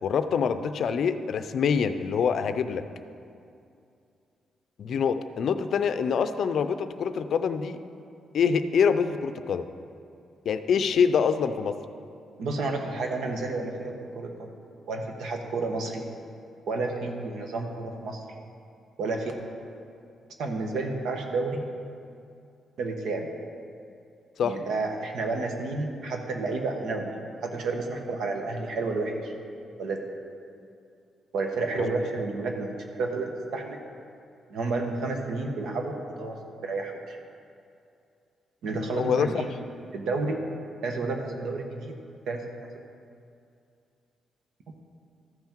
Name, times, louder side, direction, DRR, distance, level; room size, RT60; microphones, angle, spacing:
voice 1, 0.0-2.8 4.8-7.8 8.3-9.7 10.5-11.8 24.4-24.6 31.8-32.0 38.9-39.4, left 6 dB, 65° left, 10 dB, 0.4 m, -25 dB
voice 2, 12.4-14.5 14.9-16.0 16.7-18.2 19.0-19.3 20.4-21.7 22.8-23.3 24.4-29.3 29.8-30.0 31.3-33.8 34.5-37.2 38.6-39.5 39.9-40.4 40.8-42.0 42.3-42.4, right 3 dB, 80° right, 3 dB, 1.1 m, -31 dB
14.0 x 5.7 x 4.5 m, 2.5 s
cardioid pair, 115°, 0 cm